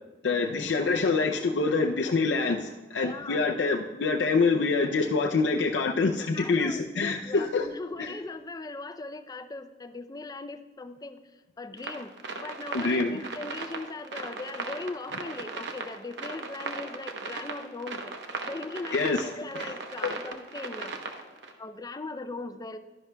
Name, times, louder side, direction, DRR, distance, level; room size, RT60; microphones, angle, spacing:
voice 1, 0.2-7.7 8.0-8.1 12.7-13.2 18.9-19.3 19.6-19.7 20.0-20.1, left 4 dB, 80° left, 1 dB, 0.5 m, -26 dB
voice 2, 3.0-3.4 6.3-11.2 11.6-18.1 18.4-20.9 21.6-22.8, left 3 dB, 20° left, 10 dB, 0.4 m, -39 dB
sound 1, 11.8-21.5, right 4 dB, 75° right, 0.9 m, -37 dB
12.0 x 10.5 x 2.2 m, 1.2 s
head